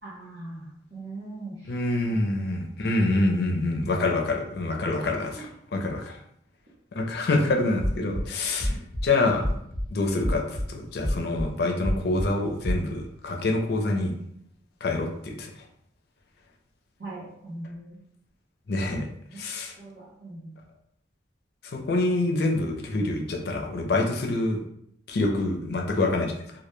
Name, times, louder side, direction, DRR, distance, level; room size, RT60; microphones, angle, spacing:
voice 1, 0.0-1.8 2.1-2.2 4.1-4.2 5.0-5.4 17.0-18.0 19.8-20.6, right 2 dB, 60° right, -9 dB, 0.8 m, -41 dB
voice 2, 1.7-6.1 6.9-8.8 9.0-9.5 9.9-14.1 14.8-15.6 18.7-19.7 21.6-24.6 25.1-26.4, left 2 dB, 60° left, 2 dB, 0.4 m, -26 dB
sound 1, 7.8-8.2 8.6-9.0 9.4-9.8 10.2-10.6 11.0-11.4 11.8-12.2 12.6-12.8, equal, 15° left, 0.8 m, -27 dB
2.1 x 2.1 x 3.0 m, 0.71 s
head